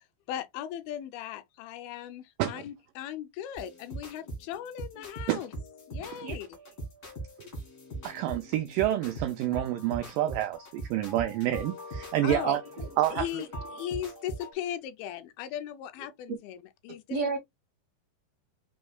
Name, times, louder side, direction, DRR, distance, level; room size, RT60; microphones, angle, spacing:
voice 1, 0.3-5.5 5.9-6.6 12.2-12.6 13.1-13.5 13.7-16.6 16.8-17.4, left 10 dB, 80° left, 2.4 m, -37 dB
sound 1, 3.6-14.5, right 1 dB, 40° left, 1.5 m, -41 dB
voice 2, 4.9-5.0 12.8-12.9 13.8-14.0 16.3-16.4 17.1-17.4, right 3 dB, 75° right, 1.5 m, -31 dB
voice 3, 6.1-6.4 8.0-12.6 13.0-13.3, right 13 dB, 90° right, 1.9 m, -28 dB
6.2 x 3.2 x 2.3 m
omnidirectional pair, 4.4 m